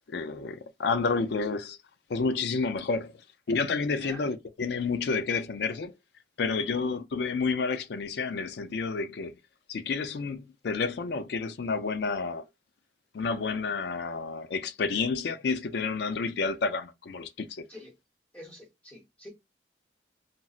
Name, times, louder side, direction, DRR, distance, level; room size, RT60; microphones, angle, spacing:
voice 1, 0.1-1.8 2.1-3.1 3.5-5.9 6.4-9.4 9.7-12.4 13.1-17.6, left 4 dB, 65° left, 0.4 m, -30 dB
voice 2, 3.8-4.3 6.6-6.8 17.7-17.9 18.3-19.3, equal, 10° left, 0.9 m, -46 dB
3.9 x 2.0 x 2.3 m
head